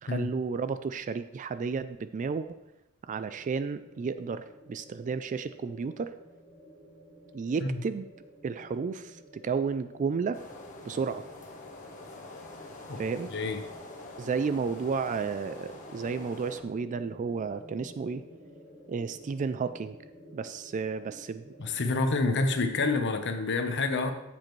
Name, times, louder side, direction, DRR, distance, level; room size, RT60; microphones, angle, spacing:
voice 1, 0.0-2.6 3.1-6.1 7.3-8.1 8.4-10.4 10.8-11.2 13.0-13.3 14.2-18.2 18.9-19.9 20.3-21.4, right 5 dB, 35° right, 12 dB, 0.3 m, -32 dB
sound 1, 3.3-23.0, equal, 10° right, 3.7 m, -52 dB
sound 2, 10.3-16.6, left 2 dB, 35° left, 1.4 m, -46 dB
voice 2, 21.6-24.1, left 3 dB, 55° left, 6 dB, 0.9 m, -28 dB
13.5 x 7.4 x 3.2 m, 0.94 s
head